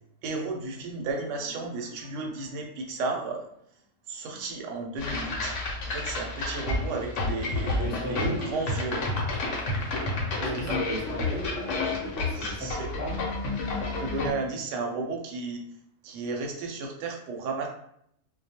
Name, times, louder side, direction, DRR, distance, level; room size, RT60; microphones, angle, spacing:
voice 1, 0.2-3.4 4.1-5.6 5.9-7.8 8.1-9.0 10.4-10.8 12.3-12.9 13.8-15.6 16.0-17.7, right 3 dB, 70° right, 2 dB, 0.9 m, -33 dB
sound 1, 5.0-14.3, left 2 dB, 70° left, 0.9 m, -30 dB
voice 2, 7.8-8.4 10.4-12.7 13.0-13.2, right 1 dB, 15° right, -7 dB, 0.4 m, -35 dB
2.3 x 2.0 x 2.8 m, 0.71 s
omnidirectional pair, 1.4 m